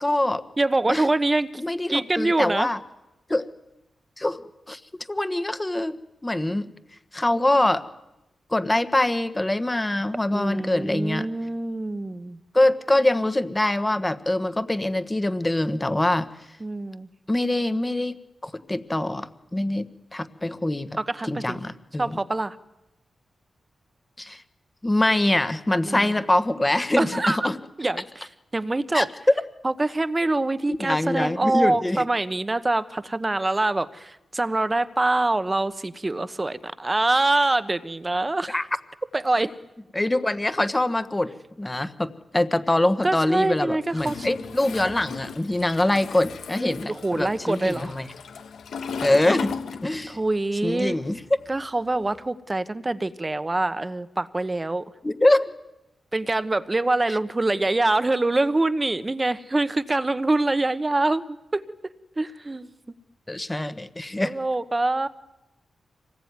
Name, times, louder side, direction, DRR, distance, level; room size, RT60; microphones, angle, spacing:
voice 1, 0.0-0.4 0.9-1.1 1.6-2.8 3.3-3.5 4.2-4.8 5.1-6.7 7.1-7.8 8.5-11.3 12.5-16.3 17.3-20.9 21.3-22.2 24.2-24.4 24.8-27.6 28.9-29.3 30.7-32.0 38.5-38.7 39.9-41.3 41.6-48.1 49.0-49.5 49.8-50.2 50.6-51.2 55.0-55.5 63.3-64.4, left 1 dB, 15° left, 12 dB, 1.3 m, -24 dB
voice 2, 0.6-1.5 1.9-2.7 10.3-12.4 16.6-17.1 21.0-21.6 22.0-22.6 25.9-26.1 27.0-27.4 27.8-28.3 28.5-29.1 29.6-38.6 39.1-39.6 43.0-44.3 46.6-47.9 50.1-51.0 51.5-54.8 56.1-61.6 62.2-62.7 64.2-65.1, right 2 dB, 20° right, 13 dB, 1.0 m, -25 dB
Toilet flush, 43.9-50.3 50.6-52.2, left 6 dB, 80° left, 1.5 m, -36 dB
26.0 x 20.0 x 9.6 m, 0.96 s
wide cardioid pair, 125°, 0 cm